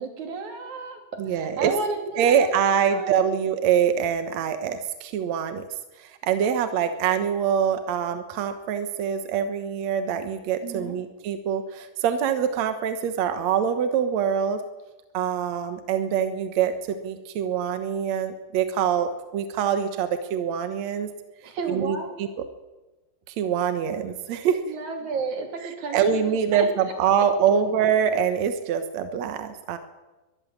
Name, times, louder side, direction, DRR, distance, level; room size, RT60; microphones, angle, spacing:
voice 1, 0.0-3.3 10.6-11.0 21.4-22.2 24.7-26.7 27.2-27.3, right 4 dB, 45° right, 5 dB, 3.9 m, -32 dB
voice 2, 1.2-1.7 2.2-5.6 6.0-14.6 15.1-16.7 17.0-21.1 21.7-22.3 23.3-24.6 25.9-29.8, right 8 dB, 70° right, 9 dB, 1.7 m, -24 dB
22.5 x 13.5 x 9.7 m, 1.1 s
omnidirectional pair, 4.9 m